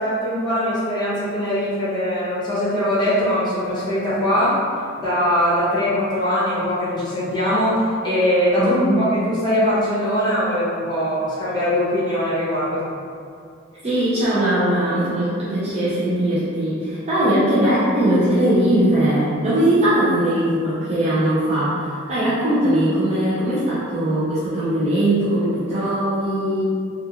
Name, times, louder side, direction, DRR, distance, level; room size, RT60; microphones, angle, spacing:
voice 1, 0.0-4.6 5.0-12.8, equal, 20° left, -10 dB, 0.8 m, -21 dB
voice 2, 8.6-9.0 13.8-26.6, right 1 dB, 30° right, -10 dB, 0.5 m, -20 dB
2.4 x 2.3 x 2.8 m, 2.4 s
head